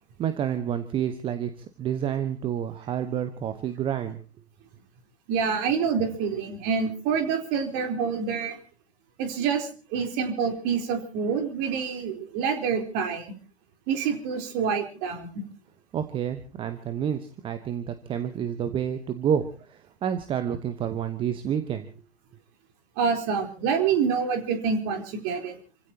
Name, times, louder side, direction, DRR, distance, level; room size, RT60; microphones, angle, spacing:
voice 1, 0.2-4.2 15.9-21.9, right 9 dB, 15° right, 10 dB, 1.1 m, -29 dB
voice 2, 5.3-8.6 9.2-13.3 13.9-15.4 23.0-25.6, right 6 dB, 30° right, 5 dB, 4.0 m, -27 dB
29.0 x 16.5 x 2.9 m, 0.37 s
figure-of-eight pair, 110°, 32 cm